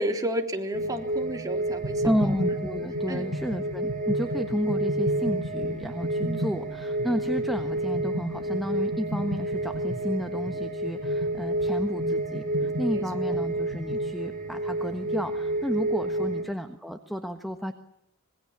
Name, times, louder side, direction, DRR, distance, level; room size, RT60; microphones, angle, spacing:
voice 1, 0.0-2.4 3.1-3.2 6.2-6.5 12.9-13.4 16.2-16.4, equal, 15° right, 2 dB, 3.5 m, -33 dB
sound 1, 0.7-16.4, right 1 dB, 40° right, 6.2 m, -30 dB
sound 2, 1.8-14.1, equal, 55° right, 4.6 m, -35 dB
voice 2, 2.0-17.7, equal, ahead, 5 dB, 1.3 m, -31 dB
26.5 x 22.0 x 7.3 m, 0.80 s
head